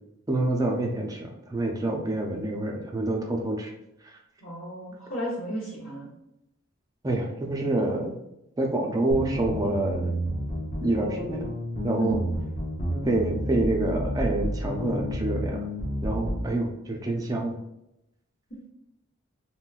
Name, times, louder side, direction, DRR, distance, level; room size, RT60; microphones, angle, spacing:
voice 1, 0.3-3.7 4.0-4.1 7.0-8.2 8.6-10.2 10.8-11.5 11.8-12.2 13.1-15.7 16.0-17.6, right 2 dB, 20° right, 1 dB, 0.4 m, -27 dB
voice 2, 4.4-6.1 12.0-12.1, right 1 dB, 80° left, -10 dB, 1.2 m, -33 dB
sound 1, 9.1-16.5, equal, 35° left, 0.7 m, -30 dB
3.8 x 2.2 x 2.4 m, 0.85 s
head